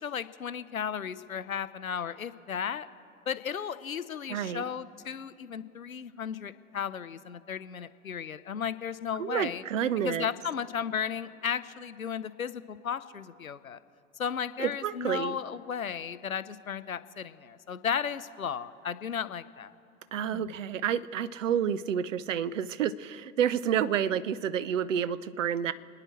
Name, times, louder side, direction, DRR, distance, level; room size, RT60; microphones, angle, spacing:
voice 1, 0.0-2.9 3.3-9.6 10.0-13.8 14.2-19.7 20.3-20.4, left 7 dB, 85° left, 14 dB, 0.6 m, -35 dB
voice 2, 4.3-4.6 9.2-10.3 14.6-15.4 20.1-25.7, right 9 dB, 65° right, 17 dB, 0.7 m, -29 dB
27.0 x 9.9 x 4.4 m, 2.7 s
figure-of-eight pair, 90°, 41 cm